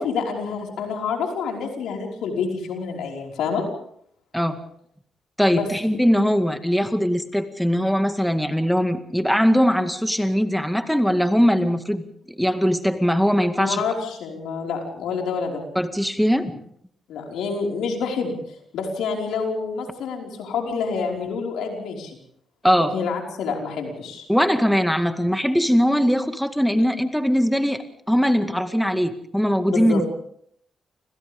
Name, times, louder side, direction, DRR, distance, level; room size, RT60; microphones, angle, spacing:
voice 1, 0.0-3.6 5.5-5.7 13.6-15.6 17.1-22.2 22.9-24.3 29.7-30.0, left 5 dB, 80° left, 1 dB, 5.3 m, -28 dB
voice 2, 5.4-12.0 12.4-13.8 15.8-16.5 22.6-22.9 24.3-30.1, equal, ahead, 7 dB, 2.1 m, -21 dB
29.5 x 25.5 x 3.7 m, 0.68 s
supercardioid pair, 60°, 0 cm